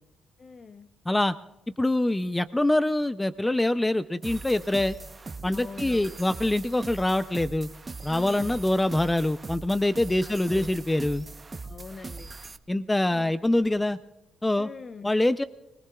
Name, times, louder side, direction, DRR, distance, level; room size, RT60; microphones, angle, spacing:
voice 1, 0.4-0.9 5.5-6.2 8.1-8.7 10.3-10.7 11.6-12.3 13.1-13.4 14.5-15.1, left 4 dB, 40° left, 12 dB, 0.8 m, -44 dB
voice 2, 1.8-5.0 5.4-7.7 8.0-11.3 12.7-14.0 14.4-14.7 15.0-15.4, left 1 dB, 10° left, 12 dB, 0.5 m, -25 dB
sound 1, 4.2-12.6, right 3 dB, 25° right, 0.8 m, -40 dB
23.5 x 19.5 x 2.3 m, 1.0 s
cardioid pair, 90°, 0 cm